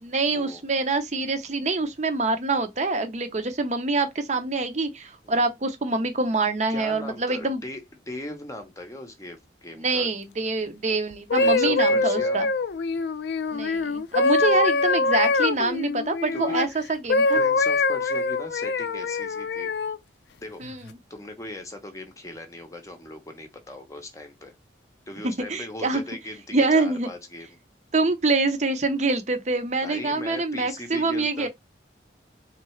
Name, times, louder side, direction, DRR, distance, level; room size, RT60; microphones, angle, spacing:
voice 1, 0.0-7.6 9.8-12.5 13.5-17.4 20.6-20.8 25.2-26.0 26.5-27.1 27.9-31.5, right 3 dB, 40° right, 0.6 m, -25 dB
voice 2, 6.7-7.8 8.1-10.1 11.3-12.4 14.4-14.6 16.3-16.6 17.3-19.7 20.4-20.8 21.1-24.5 25.1-27.6 29.8-31.5, left 1 dB, 15° left, 0.7 m, -39 dB
sound 1, 11.1-16.7 17.1-20.0 20.6-20.9, left 3 dB, 70° left, 0.5 m, -24 dB
3.7 x 3.3 x 3.1 m
head